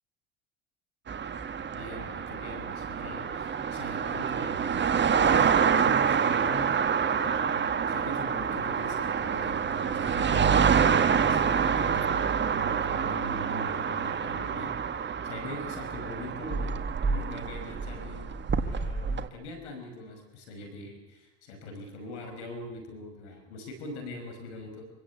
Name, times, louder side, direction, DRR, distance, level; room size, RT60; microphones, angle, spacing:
sound 1, 1.1-19.3, right 6 dB, 30° right, 1.7 m, -27 dB
voice 1, 1.7-4.8 5.1-6.7 7.2-10.7 11.1-16.7 17.1-18.3 18.6-24.8, left 2 dB, 80° left, 5 dB, 5.5 m, -42 dB
26.0 x 17.0 x 8.3 m, 1.0 s
hypercardioid pair, 80°, 34 cm